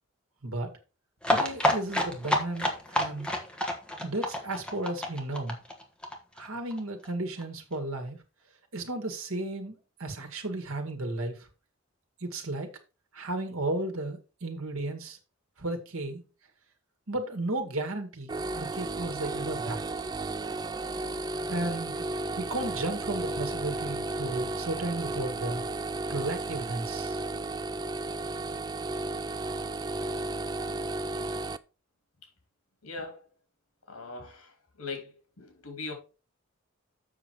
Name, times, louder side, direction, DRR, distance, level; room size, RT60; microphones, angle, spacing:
sound 1, 1.2-6.8 7.1-7.2 7.4-7.5 7.7-7.8, left 1 dB, 5° left, 1.3 m, -28 dB
voice 1, 1.3-3.3 4.0-5.6 6.4-8.2 8.7-11.3 12.2-12.7 13.1-15.2 15.6-16.2 17.1-19.8 21.5-22.1 22.4-25.6 26.1-27.2, right 2 dB, 70° right, 1.8 m, -34 dB
sound 2, 18.3-31.6, right 2 dB, 20° right, 0.3 m, -34 dB
voice 2, 32.8-33.2 33.9-35.9, left 3 dB, 80° left, 3.0 m, -40 dB
7.3 x 6.1 x 4.6 m
head